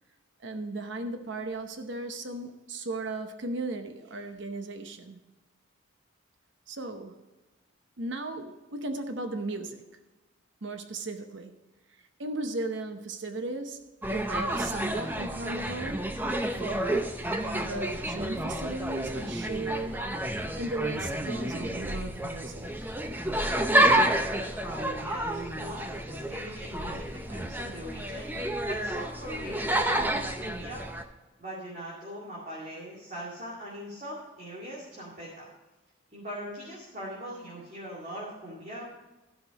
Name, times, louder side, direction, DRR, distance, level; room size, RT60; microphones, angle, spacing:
voice 1, 0.4-5.2 6.7-7.2 8.0-9.8 10.6-11.5 11.9-16.1 16.5-20.0 20.5-22.9, right 2 dB, 65° right, 0.9 m, -36 dB
sound 1, 14.0-31.0, right 1 dB, 10° right, 0.6 m, -30 dB
voice 2, 24.6-28.3 28.6-30.9 31.4-35.5 36.1-38.8, equal, 35° right, 2.3 m, -41 dB
12.5 x 6.0 x 5.3 m
head